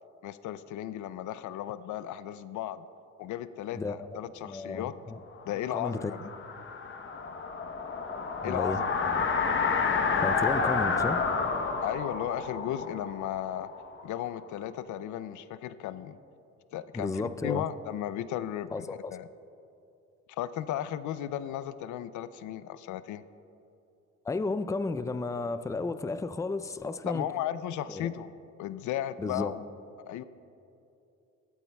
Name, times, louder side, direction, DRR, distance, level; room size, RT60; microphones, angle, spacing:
voice 1, 0.2-2.8 3.2-4.9 5.5-6.3 8.4-9.0 11.8-13.7 14.0-16.2 16.7-19.3 20.4-23.2 27.0-28.3 28.6-29.6 30.1-30.2, left 11 dB, 80° left, 15 dB, 0.5 m, -35 dB
voice 2, 3.7-4.1 4.4-5.2 5.7-6.3 8.4-8.8 10.2-11.3 16.9-17.6 18.7-19.2 24.2-27.3 27.9-28.1 29.2-29.6, left 3 dB, 10° left, 12 dB, 0.4 m, -33 dB
sound 1, 5.4-14.2, left 5 dB, 40° left, 0.9 m, -30 dB
19.0 x 13.0 x 2.3 m, 2.7 s
cardioid pair, 90°, 30 cm